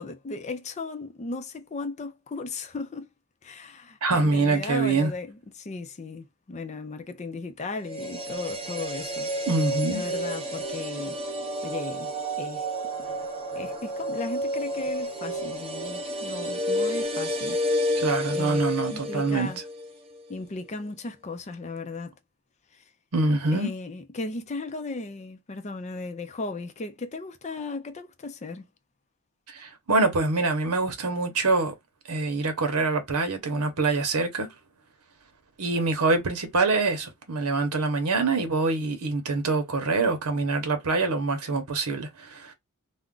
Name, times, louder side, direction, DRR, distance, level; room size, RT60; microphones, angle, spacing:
voice 1, 0.0-3.1 3.4-9.3 9.9-11.2 11.6-12.1 12.4-12.7 13.6-17.6 18.3-19.6 20.3-22.1 22.7-22.8 23.5-28.7, left 3 dB, 30° left, 0.4 m, -36 dB
voice 2, 4.0-5.1 9.4-10.0 18.0-19.5 23.1-23.7 29.5-31.7 32.1-34.5 35.6-42.5, right 3 dB, 90° right, 0.8 m, -25 dB
sound 1, 7.8-19.9 20.2-20.3, equal, 25° right, 0.6 m, -30 dB
2.4 x 2.2 x 3.6 m
head